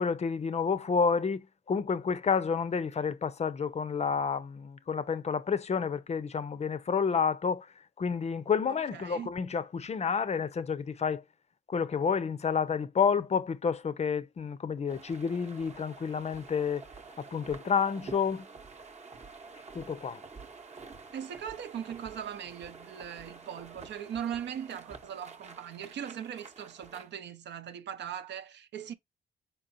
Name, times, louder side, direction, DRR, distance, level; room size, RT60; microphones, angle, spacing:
voice 1, 0.0-7.7 8.0-11.2 11.7-16.8 17.2-18.5 19.7-20.2, left 6 dB, 35° left, 0.5 m, -30 dB
voice 2, 8.7-9.3 21.1-28.9, right 9 dB, 60° right, 0.6 m, -39 dB
sound 1, 14.9-27.1, right 4 dB, 35° right, 0.9 m, -49 dB
4.6 x 3.6 x 2.5 m
cardioid pair, 90°, 20 cm